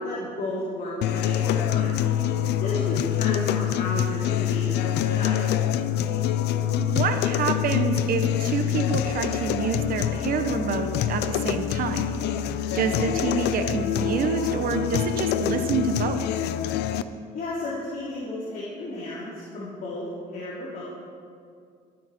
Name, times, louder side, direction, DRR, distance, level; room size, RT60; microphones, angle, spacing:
voice 1, 0.0-2.0 2.6-5.3 17.3-20.8, left 2 dB, 55° left, -8 dB, 3.5 m, -33 dB
sound 1, 1.0-17.0, left 10 dB, 80° left, 0.6 m, -25 dB
voice 2, 6.8-12.0 12.7-16.2, right 6 dB, 60° right, 7 dB, 1.3 m, -27 dB
22.5 x 9.3 x 4.5 m, 2.3 s
cardioid pair, 110°, 17 cm